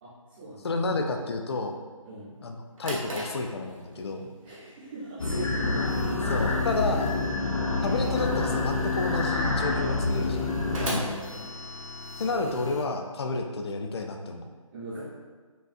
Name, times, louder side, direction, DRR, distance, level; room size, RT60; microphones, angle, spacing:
voice 1, 0.0-1.0 2.0-2.3 4.4-5.9 10.8-11.5 14.7-15.0, right 1 dB, 15° right, -14 dB, 0.6 m, -41 dB
voice 2, 0.6-1.8 2.4-4.3 6.2-7.1 7.8-10.5 10.8-11.2 12.2-14.5, left 3 dB, 50° left, 4 dB, 0.4 m, -31 dB
Drawer open or close, 2.4-12.2, equal, 70° right, 1.1 m, -41 dB
sound 1, 5.2-12.8, left 3 dB, 70° left, 0.8 m, -28 dB
5.2 x 2.5 x 2.4 m, 1.5 s
figure-of-eight pair, 160°, 18 cm